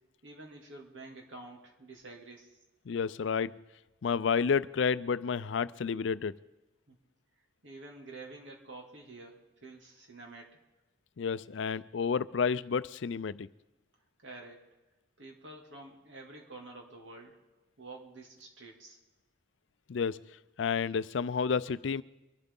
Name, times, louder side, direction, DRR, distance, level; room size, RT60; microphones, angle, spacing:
voice 1, 0.2-2.6 6.9-7.0 7.6-10.6 14.2-14.6 15.2-17.4 17.8-19.0, right 2 dB, 75° right, 2.5 m, -49 dB
voice 2, 2.9-3.6 4.0-6.4 11.2-13.5 19.9-20.2 20.6-22.0, left 6 dB, 75° left, 0.4 m, -30 dB
24.0 x 12.0 x 3.8 m
head